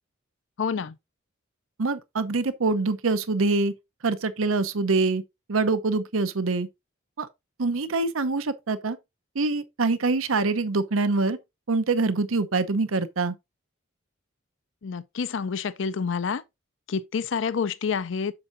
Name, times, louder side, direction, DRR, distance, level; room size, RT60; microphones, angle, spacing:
voice 1, 0.6-1.0 14.8-16.4 16.9-18.3, left 6 dB, 65° left, 0.5 m, -28 dB
voice 2, 1.8-3.7 4.0-5.2 5.5-6.7 7.2-7.3 7.6-9.0 9.3-11.4 11.7-13.3, right 3 dB, 90° right, 0.8 m, -24 dB
7.7 x 6.7 x 2.6 m
head